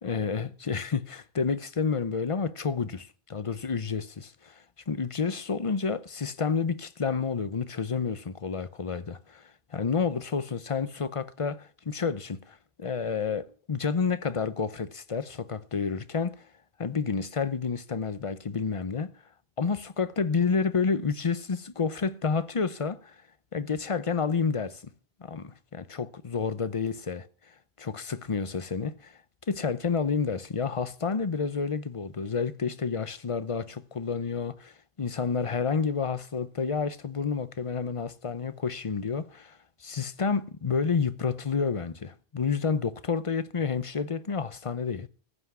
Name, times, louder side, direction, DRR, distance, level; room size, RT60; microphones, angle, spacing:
voice 1, 0.0-16.5 16.8-19.1 19.6-23.2 23.5-24.8 25.2-29.2 29.5-45.1, left 5 dB, 35° left, 0.7 m, -30 dB
15.0 x 5.8 x 9.4 m
omnidirectional pair, 1.1 m